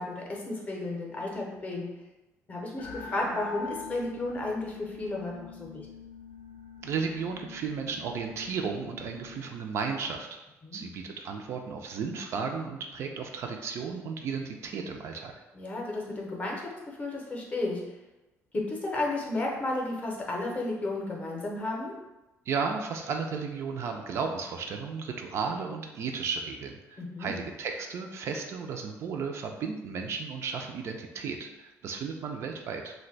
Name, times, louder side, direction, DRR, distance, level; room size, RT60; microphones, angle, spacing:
voice 1, 0.0-1.9 2.5-5.9 10.6-10.8 15.5-17.8 18.5-21.9 27.0-27.3, left 2 dB, 25° left, -1 dB, 0.6 m, -33 dB
sound 1, 2.8-9.4, left 4 dB, 80° left, 0.5 m, -44 dB
voice 2, 6.8-10.4 10.7-15.3 22.5-32.9, right 5 dB, 50° right, 3 dB, 0.3 m, -34 dB
2.6 x 2.1 x 3.9 m, 1.0 s
cardioid pair, 150°, 6 cm